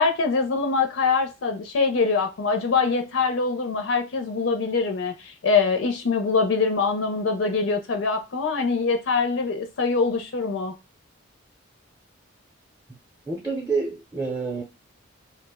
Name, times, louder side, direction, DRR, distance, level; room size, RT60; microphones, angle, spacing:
voice 1, 0.0-10.7, left 4 dB, 70° left, 0.4 m, -23 dB
voice 2, 13.3-14.6, right 4 dB, 15° right, 0.5 m, -28 dB
2.4 x 2.0 x 3.4 m
head